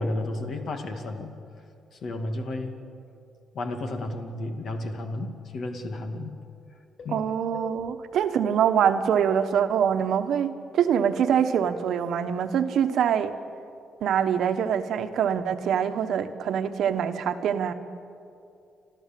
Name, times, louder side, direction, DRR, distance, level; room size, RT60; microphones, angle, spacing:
voice 1, 0.0-1.3 1.9-2.7 3.5-6.3 7.0-7.2 7.5-7.7, left 2 dB, 60° left, 5 dB, 2.4 m, -32 dB
voice 2, 7.1-13.3 14.0-17.7, right 8 dB, 70° right, 9 dB, 1.1 m, -24 dB
30.0 x 12.5 x 7.6 m, 2.6 s
cardioid pair, 90°, 0 cm